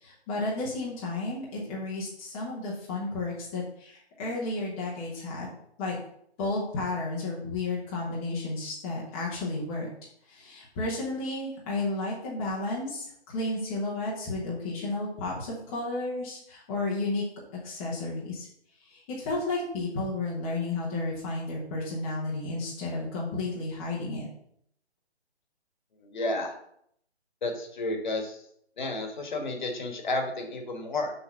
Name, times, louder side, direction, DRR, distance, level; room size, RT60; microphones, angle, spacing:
voice 1, 0.0-5.5 5.8-6.0 6.4-9.9 10.3-17.2 17.6-18.5 18.9-24.3, left 2 dB, 10° left, -6 dB, 0.9 m, -32 dB
voice 2, 26.0-26.5 27.4-28.5 28.8-31.1, left 2 dB, 45° left, 4 dB, 1.4 m, -31 dB
6.2 x 3.8 x 5.8 m, 0.70 s
hypercardioid pair, 165°, 33 cm